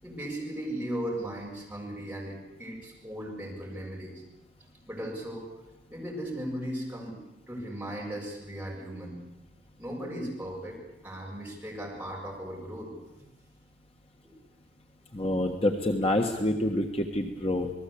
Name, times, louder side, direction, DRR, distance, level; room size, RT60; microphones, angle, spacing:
voice 1, 0.0-4.2 4.9-5.5 5.9-7.2 7.5-9.2 9.8-10.8 11.0-12.9 14.2-14.3 15.2-15.3, right 1 dB, 10° right, -3 dB, 7.2 m, -37 dB
voice 2, 15.1-17.7, left 1 dB, 30° left, 3 dB, 1.4 m, -27 dB
28.0 x 19.5 x 8.5 m, 0.95 s
head